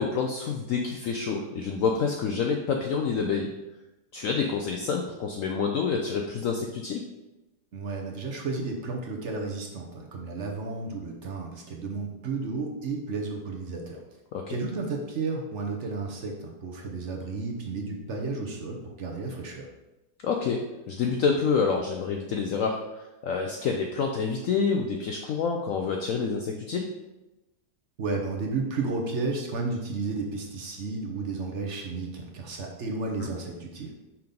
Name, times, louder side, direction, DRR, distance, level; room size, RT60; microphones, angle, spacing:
voice 1, 0.0-3.5 4.1-7.0 14.3-14.5 20.2-20.6 20.9-26.9 33.2-33.3, left 5 dB, 65° left, 2 dB, 0.9 m, -27 dB
voice 2, 7.7-14.0 14.5-19.7 28.0-33.9, right 3 dB, 50° right, 0 dB, 1.0 m, -32 dB
5.7 x 3.8 x 5.2 m, 1.0 s
omnidirectional pair, 1.7 m